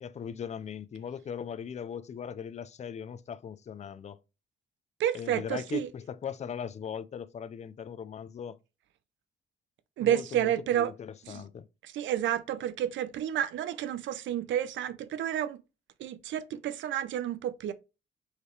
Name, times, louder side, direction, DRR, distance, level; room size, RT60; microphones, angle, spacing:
voice 1, 0.0-4.2 5.1-8.6 10.0-11.7, left 8 dB, 35° left, 0.4 m, -39 dB
voice 2, 5.0-5.9 10.0-10.9 11.2-11.4 11.8-15.6 16.0-17.7, right 11 dB, 75° right, 0.5 m, -30 dB
4.6 x 3.2 x 3.1 m
cardioid pair, 90°, 20 cm